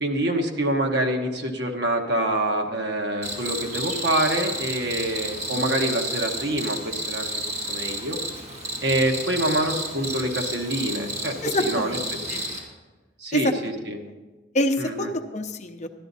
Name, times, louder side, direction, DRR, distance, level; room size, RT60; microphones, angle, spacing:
voice 1, 0.0-8.2 8.8-12.4 13.2-14.0 14.8-15.1, right 1 dB, 60° right, 3 dB, 1.2 m, -26 dB
Cricket, 3.2-12.6, right 1 dB, 35° right, 2.0 m, -31 dB
voice 2, 11.4-12.0 12.3-12.4 13.3-13.4 14.5-15.9, left 1 dB, 40° left, 6 dB, 0.7 m, -26 dB
12.0 x 11.5 x 4.1 m, 1.3 s
head